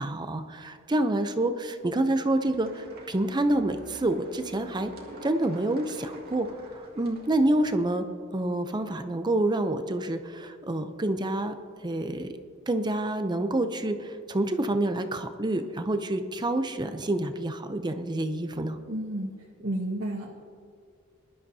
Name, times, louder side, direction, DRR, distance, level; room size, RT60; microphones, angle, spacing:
voice 1, 0.0-4.9 5.2-6.5 6.7-8.0 8.3-11.5 11.8-12.3 12.7-18.8, right 1 dB, 20° right, 8 dB, 0.6 m, -27 dB
sound 1, 2.4-7.8, right 1 dB, 45° right, 2.3 m, -47 dB
voice 2, 18.9-19.3 19.6-20.3, right 1 dB, 85° right, -5 dB, 1.5 m, -31 dB
21.0 x 12.0 x 2.8 m, 2.2 s
head